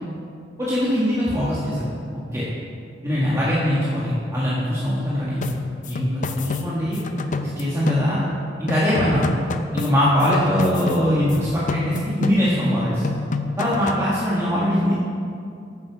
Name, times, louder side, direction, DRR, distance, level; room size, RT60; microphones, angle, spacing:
voice 1, 0.6-1.9 2.3-2.4 3.0-5.4 5.9-7.0 7.4-8.2 8.6-9.2 9.7-13.1 13.6-14.9, equal, 15° right, -9 dB, 1.5 m, -22 dB
sound 1, 5.4-8.4 8.7-11.4 11.7-12.8 13.0-14.1, left 3 dB, 45° left, 0.5 m, -28 dB
9.2 x 7.5 x 6.0 m, 2.5 s
head